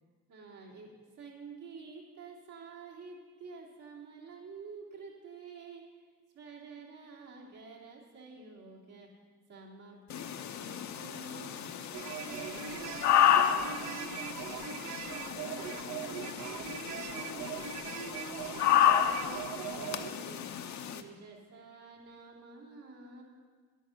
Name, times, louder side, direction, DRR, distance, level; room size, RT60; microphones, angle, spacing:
voice 1, 0.3-5.8 6.3-9.1 9.5-11.6 12.1-14.4 14.7-17.6 18.0-20.5 20.9-23.2, right 4 dB, 85° right, -3 dB, 3.0 m, -49 dB
sound 1, 10.1-21.0, left 10 dB, 70° left, 0.8 m, -31 dB
sound 2, 11.9-20.1, right 10 dB, 65° right, 0.7 m, -41 dB
11.0 x 9.2 x 6.5 m, 1.5 s
cardioid pair, 90°, 30 cm